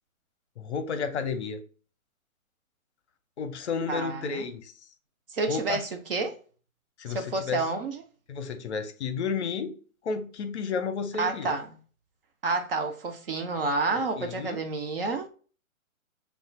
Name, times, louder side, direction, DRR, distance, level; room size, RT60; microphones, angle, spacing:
voice 1, 0.6-1.6 3.4-4.7 5.5-5.8 7.0-7.6 8.3-9.8 10.0-11.5 14.2-14.6, left 5 dB, 50° left, 0.6 m, -32 dB
voice 2, 3.9-4.5 5.3-6.4 7.1-8.0 11.2-11.7 12.4-15.3, right 3 dB, 45° right, 0.6 m, -29 dB
5.1 x 2.4 x 2.2 m
hypercardioid pair, 145°, 42 cm